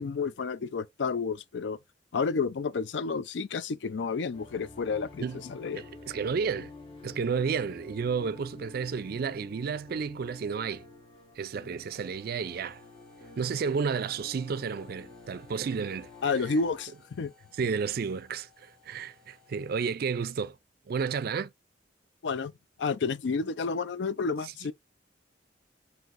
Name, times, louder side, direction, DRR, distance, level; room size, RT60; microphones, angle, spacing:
voice 1, 0.0-1.8 2.1-5.8 16.2-17.3 22.2-22.5 22.8-24.7, left 4 dB, 70° left, 0.4 m, -30 dB
sound 1, 4.3-16.9, left 3 dB, 30° left, 1.3 m, -49 dB
voice 2, 5.7-6.7 7.0-10.8 11.4-12.8 13.4-16.1 17.6-20.6 20.9-21.5, right 5 dB, 55° right, 0.4 m, -31 dB
sound 2, 11.9-19.9, left 4 dB, 5° left, 0.9 m, -62 dB
5.8 x 2.8 x 2.5 m
head